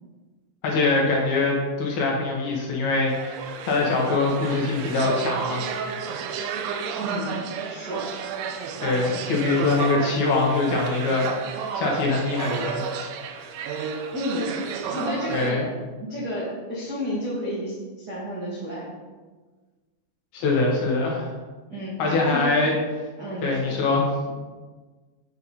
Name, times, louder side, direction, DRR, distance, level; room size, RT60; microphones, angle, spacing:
voice 1, 0.6-5.7 8.8-11.3 11.7-13.0 15.3-15.6 20.3-21.3 22.0-22.7 23.4-24.1, left 3 dB, 65° left, -2 dB, 2.8 m, -23 dB
sound 1, 3.1-15.5, right 6 dB, 90° right, 3.1 m, -31 dB
voice 2, 6.9-7.4 7.7-8.1 14.1-14.5 14.9-18.9 21.7-22.5 23.2-23.8, left 1 dB, 65° right, -8 dB, 0.9 m, -31 dB
7.7 x 7.6 x 4.1 m, 1.3 s
omnidirectional pair, 5.5 m